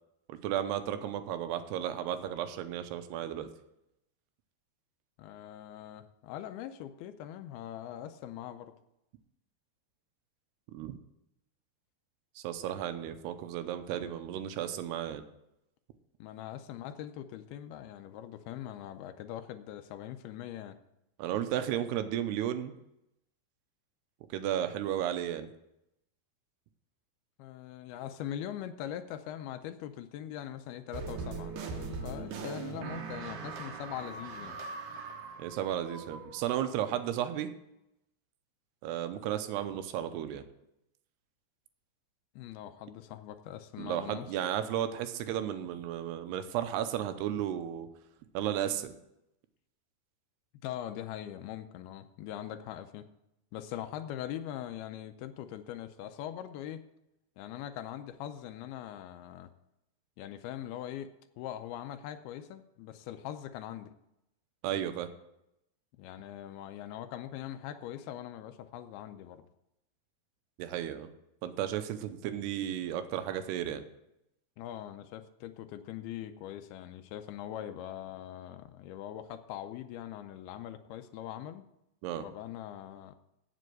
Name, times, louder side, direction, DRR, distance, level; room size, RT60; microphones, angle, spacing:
voice 1, 0.3-3.5 10.7-11.0 12.4-15.2 21.2-22.7 24.3-25.5 35.4-37.5 38.8-40.4 43.8-47.9 48.3-49.0 64.6-65.1 70.6-71.1 71.4-73.8 82.0-82.2, right 10 dB, 90° right, 10 dB, 2.8 m, -34 dB
voice 2, 5.2-8.7 16.2-20.8 27.4-34.6 42.4-44.4 50.6-53.1 53.5-56.8 57.4-59.5 60.2-61.1 61.4-63.9 66.0-69.4 74.6-81.6 82.2-83.2, left 11 dB, 80° left, 10 dB, 2.5 m, -42 dB
sound 1, 30.9-36.6, right 4 dB, 65° right, 2.4 m, -40 dB
8.2 x 7.7 x 7.7 m, 0.84 s
omnidirectional pair, 4.7 m